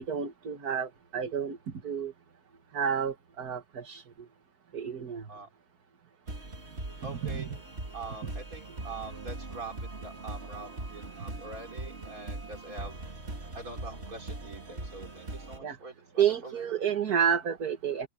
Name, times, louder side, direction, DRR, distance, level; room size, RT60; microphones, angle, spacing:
voice 1, 0.0-1.6 1.8-2.1 2.7-4.0 4.7-5.2 7.1-7.4 15.6-15.8 16.2-18.1, right 8 dB, 80° right, 2.2 m, -30 dB
sound 1, 6.3-15.6, right 2 dB, 45° right, 2.6 m, -41 dB
voice 2, 7.0-7.5 7.9-13.0 13.5-16.7, right 3 dB, 65° right, 4.5 m, -44 dB
omnidirectional pair, 1.6 m